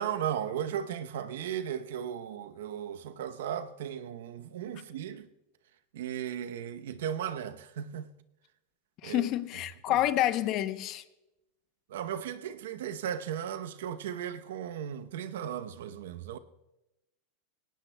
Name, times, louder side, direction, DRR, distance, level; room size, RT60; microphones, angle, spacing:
voice 1, 0.0-5.3 5.9-8.1 9.0-9.3 9.9-10.0 11.9-16.4, right 9 dB, 80° right, 0.8 m, -36 dB
voice 2, 9.0-11.0, left 13 dB, 40° left, 0.7 m, -28 dB
18.5 x 18.0 x 2.3 m
supercardioid pair, 140°, 0 cm